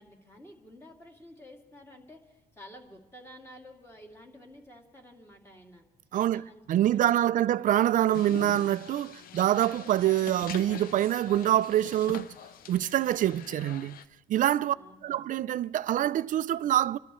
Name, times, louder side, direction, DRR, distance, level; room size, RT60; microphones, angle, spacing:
voice 1, 0.0-5.8 6.1-7.5 14.7-15.3, equal, 15° left, 2.7 m, -51 dB
voice 2, 6.1-12.3 12.7-14.0 14.3-14.7 15.0-17.0, right 12 dB, 50° right, 0.4 m, -25 dB
sound 1, 8.1-14.0, left 9 dB, 60° left, 0.6 m, -44 dB
27.0 x 13.5 x 3.1 m
cardioid pair, 110°, 17 cm